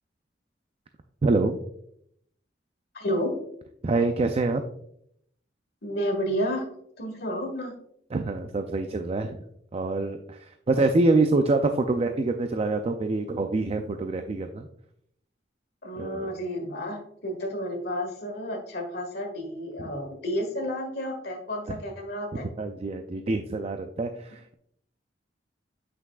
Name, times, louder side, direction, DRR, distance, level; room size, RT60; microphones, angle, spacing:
voice 1, 1.2-1.6 3.8-4.6 8.1-9.4 9.7-14.7 16.0-16.3 19.8-19.9 21.7-21.8 22.3-24.5, right 3 dB, 35° right, 7 dB, 0.4 m, -26 dB
voice 2, 2.9-3.4 5.8-6.6 7.0-7.7 15.8-22.4, equal, 60° left, 3 dB, 1.7 m, -31 dB
8.2 x 5.9 x 2.3 m, 0.71 s
head